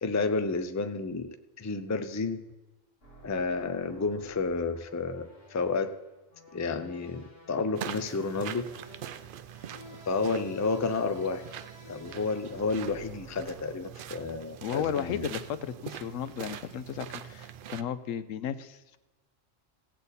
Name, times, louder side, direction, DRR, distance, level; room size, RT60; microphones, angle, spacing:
voice 1, 0.0-2.5 3.2-5.9 6.5-8.7 10.1-11.4 11.9-15.3, left 4 dB, 25° left, 9 dB, 0.4 m, -31 dB
sound 1, 3.0-13.7, equal, 50° left, 2.7 m, -53 dB
sound 2, 7.7-17.8, right 10 dB, 65° right, 0.5 m, -43 dB
voice 2, 14.6-19.0, left 8 dB, 85° left, 13 dB, 1.1 m, -34 dB
16.5 x 8.4 x 4.1 m, 1.1 s
omnidirectional pair, 1.3 m